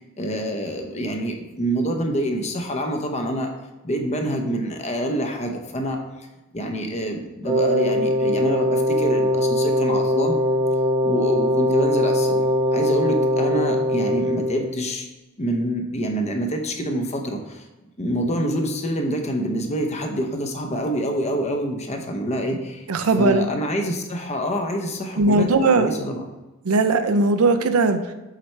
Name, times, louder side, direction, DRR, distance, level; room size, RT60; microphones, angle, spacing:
voice 1, 0.0-3.5 3.8-6.0 6.5-10.4 11.0-15.1 15.4-17.6 18.0-22.9 23.2-26.2, equal, 30° left, 4 dB, 0.7 m, -26 dB
Wind instrument woodwind instrument, 7.4-14.7, equal, 20° right, 1.0 m, -21 dB
voice 2, 22.9-23.5 25.2-25.9 26.6-28.0, right 3 dB, 80° right, 9 dB, 0.5 m, -18 dB
7.5 x 4.3 x 3.3 m, 1.0 s
head